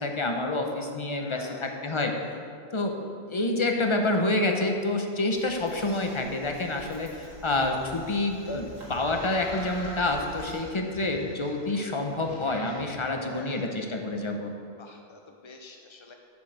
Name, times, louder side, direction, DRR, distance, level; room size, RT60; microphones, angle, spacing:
voice 1, 0.0-2.2 2.7-3.0 3.2-14.5, left 2 dB, 25° left, 3 dB, 0.7 m, -28 dB
voice 2, 1.2-1.9 10.9-11.1 13.2-13.7 14.8-16.1, left 3 dB, 50° left, 3 dB, 0.3 m, -47 dB
Bird vocalization bird call bird song, 5.3-10.6, right 2 dB, 80° right, 2.3 m, -47 dB
sound 1, 8.0-13.8, left 1 dB, 75° left, 2.0 m, -46 dB
7.5 x 7.2 x 6.6 m, 2.4 s
omnidirectional pair, 1.4 m